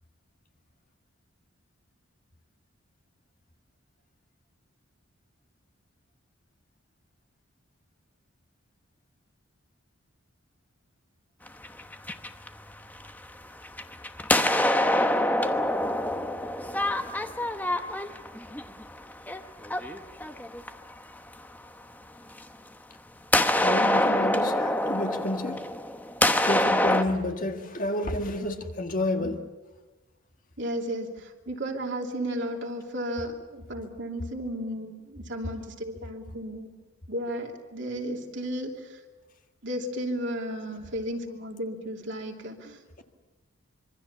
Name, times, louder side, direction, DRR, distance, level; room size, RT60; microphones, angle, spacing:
sound 1, 11.5-13.2 13.6-20.9 22.4-22.5 23.3-27.0, left 1 dB, 10° left, 1.0 m, -25 dB
voice 1, 23.6-25.6 26.4-29.5, left 1 dB, 40° left, 5 dB, 1.8 m, -30 dB
voice 2, 30.6-36.7 37.1-39.0 39.6-43.0, equal, 55° right, 2 dB, 2.9 m, -34 dB
26.0 x 24.0 x 7.3 m, 1.2 s
head